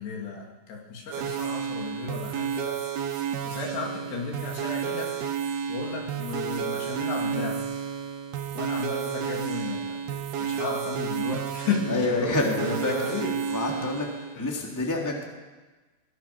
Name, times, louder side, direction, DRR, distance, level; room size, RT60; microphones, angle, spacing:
voice 1, 0.0-2.8 3.4-5.1 5.7-7.7 8.5-10.0 10.4-13.4 13.7-13.8 14.3-14.6, left 4 dB, 75° left, 0 dB, 4.9 m, -33 dB
sound 1, 1.1-14.4, right 8 dB, 70° right, 3.2 m, -31 dB
voice 2, 11.9-12.9 13.5-14.1 14.4-15.2, left 2 dB, 5° left, -1 dB, 2.8 m, -27 dB
23.5 x 19.0 x 6.2 m, 1.3 s
omnidirectional pair, 4.8 m